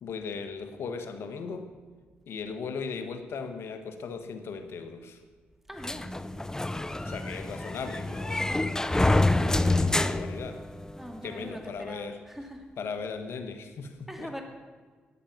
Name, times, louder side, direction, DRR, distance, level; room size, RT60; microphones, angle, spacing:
voice 1, 0.0-1.7 2.3-5.2 7.0-8.5 9.4-10.6 11.2-12.2 12.8-14.4, left 5 dB, 70° left, 8 dB, 1.3 m, -37 dB
voice 2, 5.7-6.2 8.3-8.8 10.9-12.7 14.1-14.4, equal, 5° right, 3 dB, 2.7 m, -42 dB
sound 1, 5.8-11.1, left 2 dB, 15° left, 0.6 m, -27 dB
14.0 x 9.0 x 5.9 m, 1.5 s
supercardioid pair, 55°, 4 cm